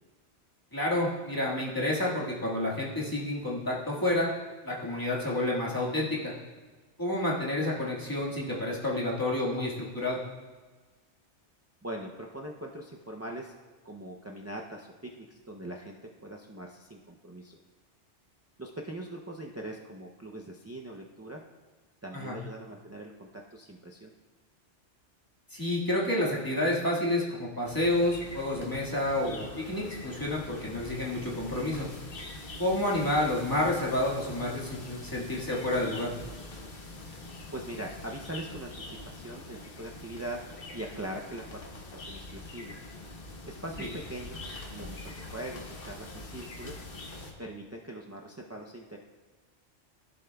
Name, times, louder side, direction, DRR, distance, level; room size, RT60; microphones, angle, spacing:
voice 1, 0.7-4.3 4.6-6.3 7.0-10.2 22.1-22.4 25.5-31.9 32.6-36.1 43.8-43.9, left 1 dB, 20° left, -6 dB, 1.7 m, -29 dB
voice 2, 11.8-13.5 13.8-17.6 18.6-21.4 22.0-24.1 37.5-40.4 40.7-42.7 43.5-46.7 47.4-49.0, right 1 dB, 25° right, -1 dB, 0.3 m, -41 dB
sound 1, 27.6-47.3, left 2 dB, 55° left, 1.2 m, -44 dB
15.0 x 7.4 x 2.3 m, 1.4 s
omnidirectional pair, 1.2 m